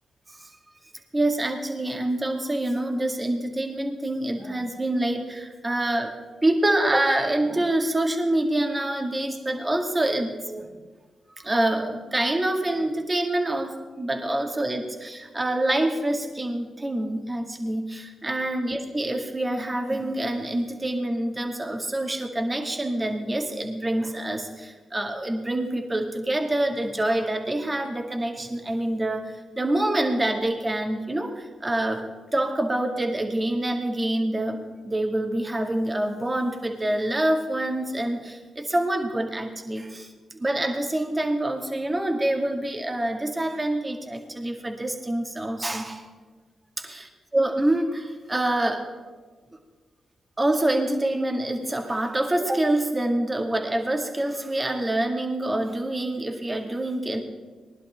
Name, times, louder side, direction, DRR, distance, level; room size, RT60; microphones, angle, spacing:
voice 1, 1.1-6.1 6.4-10.7 11.4-32.1 32.3-40.1 40.4-46.1 46.8-48.9 50.4-57.2, right 1 dB, 25° right, 3 dB, 2.2 m, -26 dB
20.0 x 11.0 x 3.7 m, 1.4 s
supercardioid pair, 40°, 0 cm